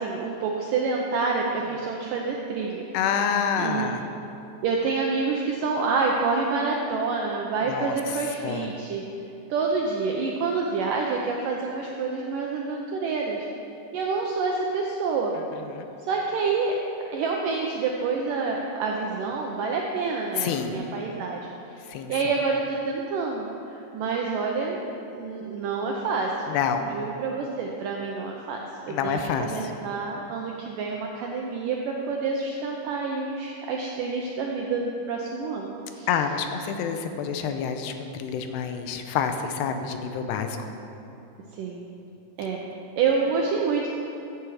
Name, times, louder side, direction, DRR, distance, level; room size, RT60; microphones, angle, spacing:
voice 1, 0.0-2.8 3.6-3.9 4.6-9.0 9.5-13.5 13.9-15.4 16.1-16.7 17.1-21.8 22.1-23.5 23.7-24.8 25.1-26.3 26.9-28.6 28.9-36.1 41.5-41.9 42.4-42.6 43.0-43.9, right 4 dB, 80° right, 0 dB, 1.9 m, -27 dB
voice 2, 2.9-4.0 7.7-8.0 8.4-8.7 15.7-15.9 20.4-20.8 21.9-22.1 26.5-26.9 28.9-29.7 36.1-40.6, left 7 dB, 90° left, 6 dB, 2.9 m, -28 dB
15.0 x 8.2 x 4.8 m, 2.9 s
omnidirectional pair, 4.8 m